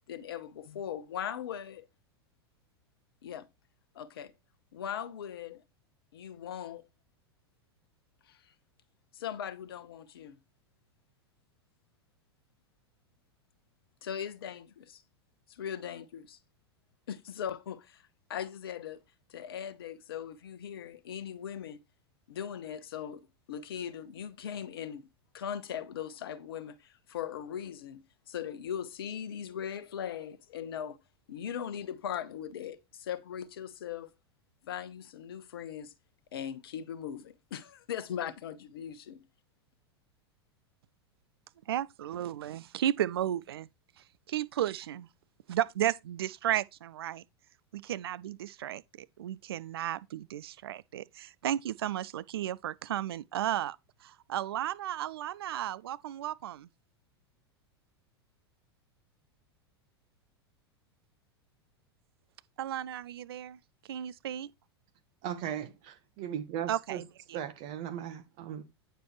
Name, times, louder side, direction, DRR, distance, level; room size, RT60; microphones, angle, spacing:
voice 1, 0.1-1.9 3.2-3.5 3.9-4.3 4.7-5.6 6.1-6.9 8.2-8.5 9.1-10.4 14.0-15.0 15.5-16.4 17.1-19.0 19.3-21.8 22.3-25.1 25.3-31.0 31.3-34.1 34.6-35.9 36.3-39.3, left 9 dB, 60° left, 0.9 m, -39 dB
voice 2, 41.7-43.7 44.3-45.1 45.5-47.2 47.7-53.8 54.0-56.7 62.6-63.6 63.9-64.5 66.7-67.0 67.3-67.4, right 11 dB, 65° right, 0.4 m, -34 dB
voice 3, 65.2-67.0 67.3-68.6, right 9 dB, 45° right, 1.2 m, -37 dB
9.2 x 6.5 x 3.1 m
figure-of-eight pair, 90°, 14 cm